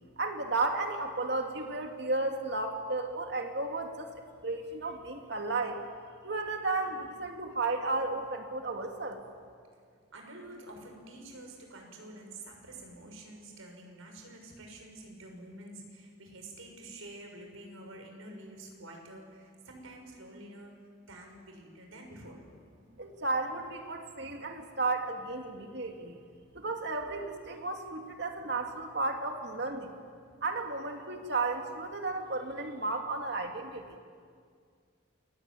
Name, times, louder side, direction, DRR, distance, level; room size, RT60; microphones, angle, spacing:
voice 1, 0.2-4.1 4.4-5.9 6.2-9.2 23.0-26.2 26.5-29.9 30.4-34.0, right 3 dB, 55° right, 4 dB, 2.4 m, -33 dB
voice 2, 10.1-20.7 21.1-22.4, right 1 dB, 85° right, 2 dB, 6.5 m, -48 dB
29.0 x 22.0 x 9.2 m, 2.1 s
head